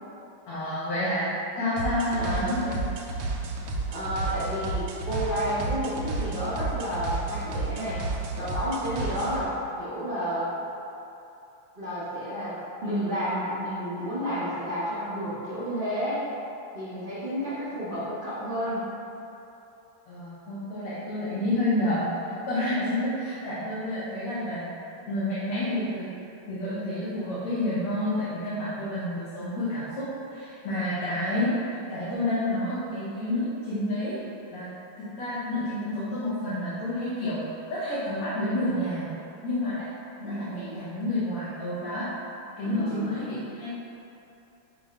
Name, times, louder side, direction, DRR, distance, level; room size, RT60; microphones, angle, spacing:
voice 1, 0.5-2.9 20.1-24.8 25.1-26.1 26.5-31.6 31.9-34.2 34.5-34.7 35.0-37.4 37.7-39.1 39.4-39.9 40.2-42.1 42.6-43.7, left 1 dB, 75° left, -12 dB, 1.8 m, -29 dB
sound 1, 1.8-9.4, right 3 dB, 75° right, 1.3 m, -32 dB
voice 2, 2.2-2.5 3.9-8.0 8.4-9.5 9.8-10.5 11.8-16.2 16.7-18.8 40.2-40.8 42.6-43.4, equal, 60° right, -12 dB, 0.5 m, -31 dB
5.3 x 2.1 x 4.8 m, 2.9 s
omnidirectional pair, 2.4 m